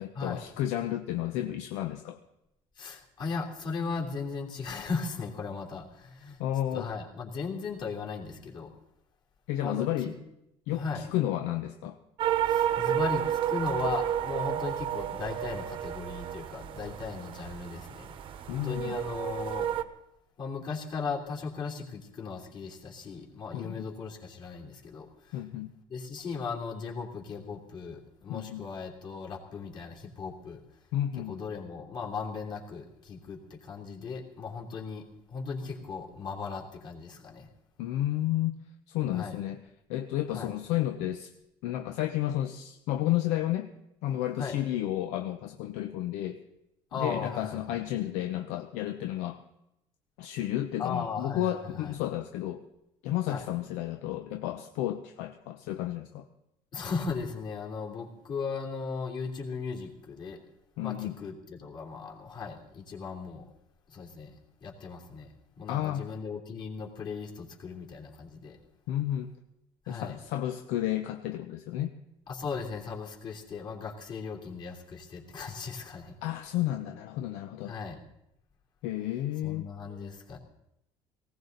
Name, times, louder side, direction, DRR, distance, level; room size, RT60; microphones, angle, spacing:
voice 1, 0.0-2.2 6.4-6.9 9.5-10.2 10.7-12.0 18.5-19.0 23.5-23.9 25.3-25.7 28.3-28.7 30.9-31.4 37.8-38.6 38.9-39.6 39.9-41.3 41.6-43.7 44.0-46.4 46.9-49.4 50.2-52.6 53.0-56.3 60.8-61.2 65.7-66.1 68.9-69.3 69.9-71.9 76.2-77.7 78.8-79.7, left 13 dB, 85° left, 6 dB, 0.9 m, -32 dB
voice 2, 2.8-6.4 6.7-8.7 9.6-10.1 10.7-11.1 12.5-18.1 18.5-19.7 20.4-25.4 25.9-30.6 31.2-37.5 39.1-39.4 40.3-40.5 44.4-44.6 46.9-47.8 50.8-52.0 53.3-53.5 56.7-60.4 60.8-63.4 63.9-64.3 64.6-65.3 65.6-68.6 69.8-70.2 72.3-76.1 77.7-78.0 79.4-80.4, left 5 dB, 40° left, -1 dB, 3.2 m, -37 dB
sound 1, 12.2-19.8, right 10 dB, 50° right, 1.0 m, -31 dB
19.0 x 17.5 x 4.0 m, 0.84 s
cardioid pair, 135°, 11 cm